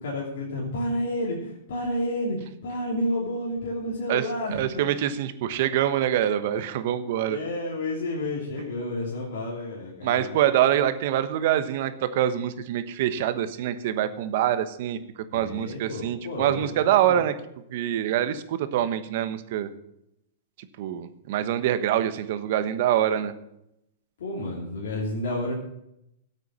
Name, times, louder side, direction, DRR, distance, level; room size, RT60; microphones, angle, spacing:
voice 1, 0.0-5.1 7.3-10.6 15.3-17.2 24.2-25.5, left 1 dB, 75° left, -4 dB, 2.9 m, -31 dB
voice 2, 4.5-7.4 10.0-15.0 15.3-17.3 17.7-19.7 20.8-23.3, right 11 dB, 60° right, 11 dB, 1.2 m, -25 dB
13.0 x 8.3 x 6.2 m, 0.81 s
hypercardioid pair, 120°, 0 cm